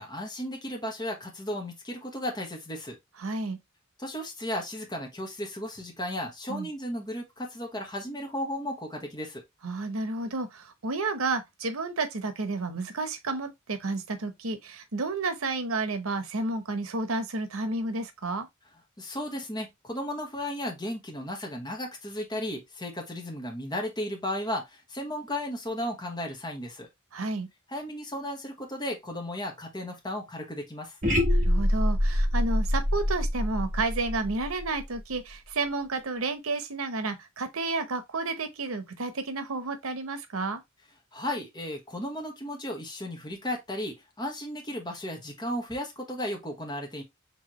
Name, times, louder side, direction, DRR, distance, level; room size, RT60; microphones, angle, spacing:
voice 1, 0.0-3.0 4.0-9.4 19.0-26.9 27.7-31.0 41.1-47.0, left 1 dB, 20° left, 1.2 m, -35 dB
voice 2, 3.2-3.6 6.5-6.7 9.6-18.5 27.1-27.5 31.3-40.6, right 3 dB, 90° right, 0.9 m, -31 dB
sound 1, 31.0-35.1, equal, 40° right, 1.5 m, -25 dB
4.6 x 3.5 x 3.0 m
head